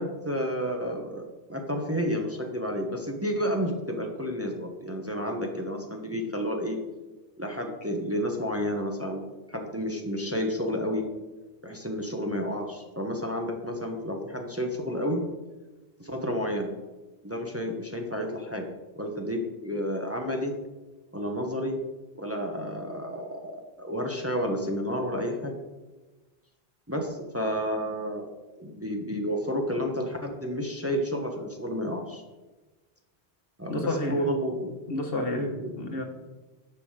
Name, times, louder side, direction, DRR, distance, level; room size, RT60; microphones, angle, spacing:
voice 1, 0.0-6.8 7.4-9.2 9.5-11.1 11.6-15.2 16.0-16.7 17.2-20.5 21.1-21.8 22.1-25.5 26.9-28.2 28.6-32.2 33.6-34.7 35.3-35.7, equal, 15° right, 2 dB, 1.2 m, -31 dB
voice 2, 33.7-34.2 34.9-36.0, left 2 dB, 60° left, 4 dB, 1.5 m, -30 dB
11.0 x 5.9 x 6.6 m, 1.2 s
omnidirectional pair, 1.1 m